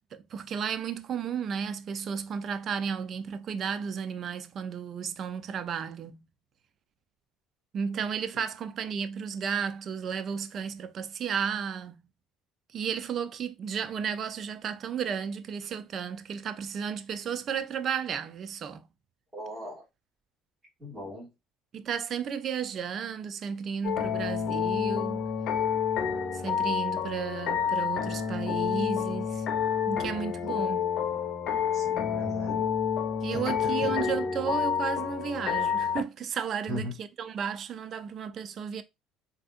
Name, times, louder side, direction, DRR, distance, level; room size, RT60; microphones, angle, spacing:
voice 1, 0.1-6.2 7.7-12.0 12.7-18.8 21.7-25.2 26.4-29.4 29.9-30.9 33.2-38.8, right 7 dB, 50° right, 0.4 m, -33 dB
voice 2, 19.3-19.9 20.8-21.3 31.7-32.7 33.3-34.0 36.7-36.9, left 1 dB, 10° right, 2.3 m, -38 dB
sound 1, 23.8-36.0, left 7 dB, 60° left, 0.6 m, -29 dB
3.5 x 2.7 x 2.4 m
supercardioid pair, 85°, 0 cm